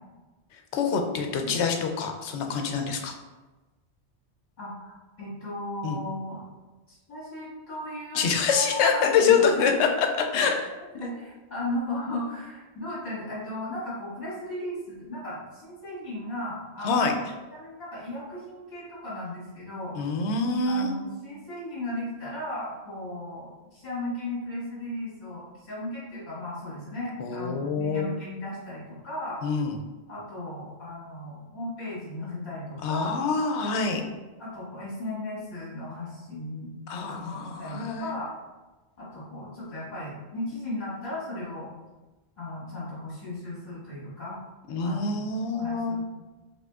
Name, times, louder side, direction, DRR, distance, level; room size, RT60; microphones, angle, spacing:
voice 1, 0.7-3.2 5.8-6.0 8.1-10.1 10.3-10.5 16.8-17.1 19.9-20.9 27.2-28.1 29.4-29.8 32.8-34.0 36.9-38.1 44.7-46.0, left 5 dB, 80° left, 4 dB, 0.9 m, -25 dB
voice 2, 4.6-6.4 6.9-9.8 10.2-10.5 10.9-17.0 17.5-19.9 20.7-29.4 30.1-33.1 34.4-38.3 39.0-41.7 42.4-44.4 44.8-45.0 45.6-46.0, left 1 dB, 40° left, -8 dB, 1.7 m, -36 dB
4.9 x 3.1 x 2.3 m, 1.2 s
omnidirectional pair, 1.2 m